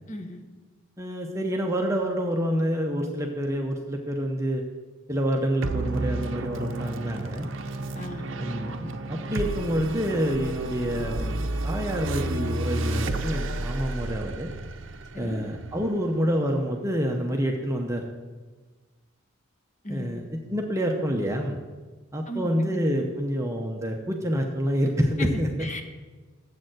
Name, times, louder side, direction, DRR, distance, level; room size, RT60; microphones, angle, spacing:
voice 1, 0.1-0.4 8.0-8.4 15.1-15.4 19.8-20.2 22.3-22.8 25.2-25.3 25.6-25.8, left 1 dB, 35° left, 6 dB, 0.9 m, -36 dB
voice 2, 1.0-4.6 5.1-7.5 8.4-14.5 15.2-18.1 19.9-21.6 22.1-25.5, equal, 15° right, 1 dB, 0.7 m, -27 dB
sound 1, 5.6-16.4, right 2 dB, 60° right, 0.6 m, -31 dB
7.5 x 6.9 x 7.7 m, 1.3 s
head